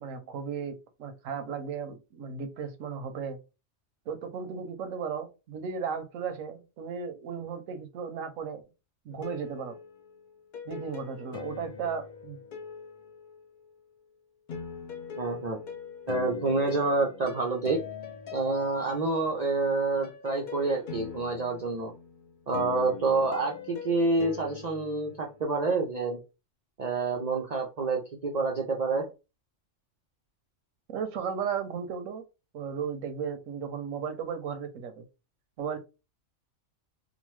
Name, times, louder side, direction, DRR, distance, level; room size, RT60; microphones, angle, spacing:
voice 1, 0.0-3.4 4.1-8.6 9.0-9.8 10.7-12.4 30.9-32.2 32.5-35.0 35.6-35.8, right 6 dB, 85° right, 8 dB, 1.0 m, -35 dB
sound 1, 9.1-13.8 14.5-25.8, left 7 dB, 65° left, 0.4 m, -42 dB
voice 2, 15.2-15.6 16.1-17.8 18.3-21.9 22.5-26.2 26.8-29.0, right 3 dB, 60° right, 0 dB, 0.4 m, -28 dB
2.9 x 2.1 x 3.1 m, 0.28 s
omnidirectional pair, 1.3 m